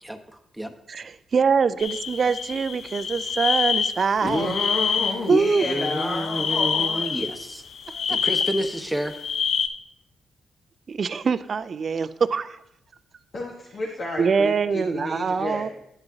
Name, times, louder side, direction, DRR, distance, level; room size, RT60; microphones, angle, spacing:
voice 1, 0.0-0.7 5.6-7.6 8.1-9.2, right 1 dB, 5° right, 5 dB, 1.2 m, -30 dB
voice 2, 0.9-4.5 5.3-5.7 7.9-8.0 10.9-12.6 14.2-15.7, right 5 dB, 55° right, 13 dB, 0.4 m, -24 dB
sound 1, 1.8-9.7, left 6 dB, 75° left, 0.7 m, -27 dB
voice 3, 4.2-7.1 13.3-15.7, left 2 dB, 55° left, -1 dB, 1.4 m, -29 dB
10.5 x 7.8 x 2.8 m, 0.80 s
supercardioid pair, 50°, 0 cm